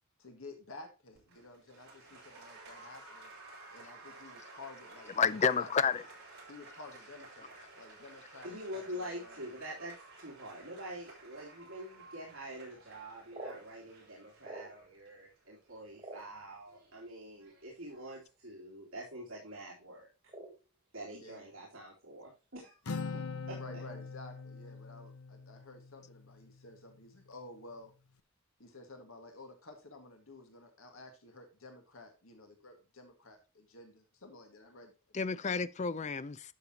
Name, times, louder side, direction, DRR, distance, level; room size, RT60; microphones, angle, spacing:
voice 1, 0.2-3.3 3.7-5.8 6.5-7.5 7.8-9.4 21.1-21.5 23.5-27.9 28.6-35.3, left 2 dB, 70° left, 1.9 m, -52 dB
Applause, 1.1-18.3, right 2 dB, 50° right, 6.1 m, -54 dB
voice 2, 5.2-6.0 35.1-36.5, left 6 dB, 30° left, 0.5 m, -30 dB
voice 3, 8.4-20.1 20.9-23.6, equal, 65° right, 3.3 m, -46 dB
sound 1, 13.0-15.1 15.5-16.9 17.7-17.8 18.0-18.4 18.7-19.1 19.3-19.6 20.3-21.3 21.5-22.4 22.7-22.8 23.2-23.5 24.0-24.4, right 2 dB, 25° right, 3.7 m, -49 dB
Acoustic guitar, 22.9-26.5, left 4 dB, 85° left, 0.8 m, -42 dB
12.0 x 6.7 x 2.9 m
head